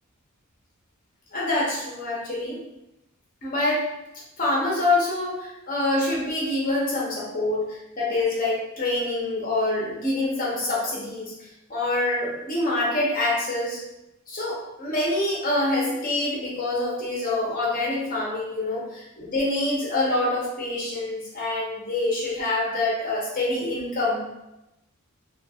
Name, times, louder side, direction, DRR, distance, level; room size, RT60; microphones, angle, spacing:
voice 1, 1.3-2.6 3.4-3.9 4.4-11.3 11.7-13.8 14.3-24.2, left 2 dB, 40° left, -5 dB, 0.9 m, -26 dB
3.2 x 2.3 x 2.4 m, 0.91 s
head